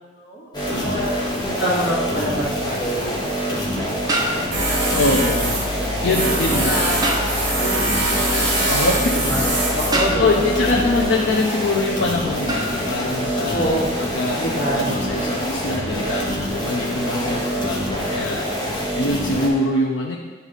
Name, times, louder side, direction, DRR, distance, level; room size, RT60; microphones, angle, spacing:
voice 1, 0.2-3.2 4.0-5.0 5.6-7.2 7.6-8.5 9.3-9.4 9.7-10.4 13.5-13.9 14.3-15.0 17.1-17.5, right 1 dB, 50° left, -13 dB, 2.2 m, -27 dB
sound 1, 0.5-19.5, equal, 20° left, 1.2 m, -26 dB
voice 2, 0.7-1.1 4.9-5.6 5.9-6.7 8.6-9.1 10.2-20.1, left 2 dB, 75° left, -2 dB, 0.6 m, -24 dB
sound 2, 4.1-4.9 7.0-7.6 9.9-10.6 12.5-12.9, right 1 dB, 20° right, 0.7 m, -26 dB
Tools, 4.5-11.0, right 1 dB, 55° right, 2.3 m, -23 dB
9.6 x 4.0 x 4.0 m, 1.4 s
head